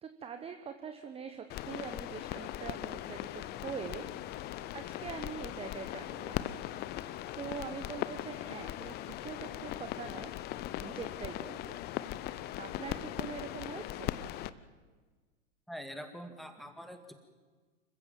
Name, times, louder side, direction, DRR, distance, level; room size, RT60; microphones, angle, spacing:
voice 1, 0.0-4.3 4.7-6.7 7.3-10.3 10.8-11.8 12.6-14.1, right 6 dB, 15° right, 8 dB, 1.1 m, -44 dB
sound 1, 1.5-14.5, left 13 dB, 25° left, 0.7 m, -39 dB
voice 2, 15.7-17.1, equal, ahead, 7 dB, 2.0 m, -44 dB
27.0 x 15.0 x 7.3 m, 1.4 s
hypercardioid pair, 110°, 38 cm